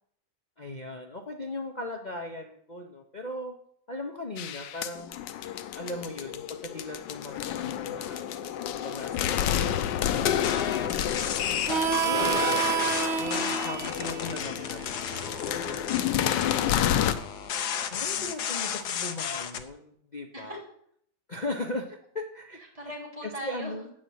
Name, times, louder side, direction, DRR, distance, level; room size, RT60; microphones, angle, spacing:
voice 1, 0.6-3.5 3.9-5.1 5.7-9.9 11.7-12.9 13.2-15.0 17.9-20.6 21.3-22.6 23.4-23.9, left 2 dB, 40° left, 2 dB, 0.6 m, -38 dB
sound 1, 4.4-17.1, left 10 dB, 90° left, 1.4 m, -30 dB
voice 2, 5.8-6.1 10.8-10.9 14.1-14.6 15.6-17.3 20.3-20.6 22.6-23.7, equal, 20° right, -3 dB, 3.4 m, -43 dB
sound 2, 10.4-19.6, left 8 dB, 70° left, 1.4 m, -33 dB
Harmonica, 11.7-17.0, right 8 dB, 55° right, 0.8 m, -31 dB
8.7 x 6.2 x 7.9 m, 0.68 s
omnidirectional pair, 1.9 m